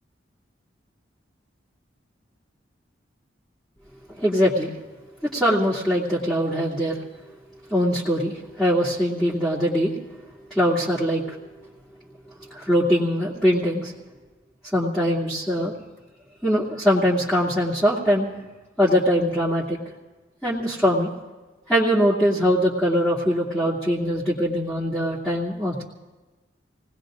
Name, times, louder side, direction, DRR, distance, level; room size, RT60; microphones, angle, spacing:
voice 1, 4.2-4.7 5.3-7.0 7.7-9.9 10.5-11.2 12.5-13.8 14.7-15.7 16.4-18.3 18.8-19.8 20.4-21.1 21.7-25.8, equal, ahead, -10 dB, 2.6 m, -22 dB
28.5 x 19.0 x 2.6 m, 1.2 s
head